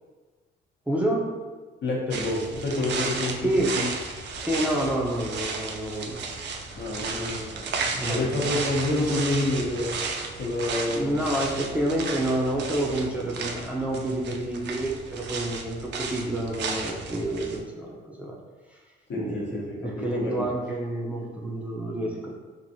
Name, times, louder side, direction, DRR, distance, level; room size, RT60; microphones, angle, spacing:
voice 1, 0.9-1.3 3.4-3.8 4.4-6.2 7.1-8.4 10.9-18.4 18.7-18.8 19.1-22.4, right 1 dB, 5° right, -3 dB, 0.5 m, -29 dB
voice 2, 1.8-3.5 3.8-3.9 6.7-7.5 8.0-10.0 10.4-11.1 19.1-20.5, left 2 dB, 65° left, -2 dB, 0.8 m, -28 dB
sound 1, 2.1-17.6, right 4 dB, 60° right, 0.4 m, -34 dB
2.9 x 2.6 x 2.6 m, 1.4 s
cardioid pair, 90°, 20 cm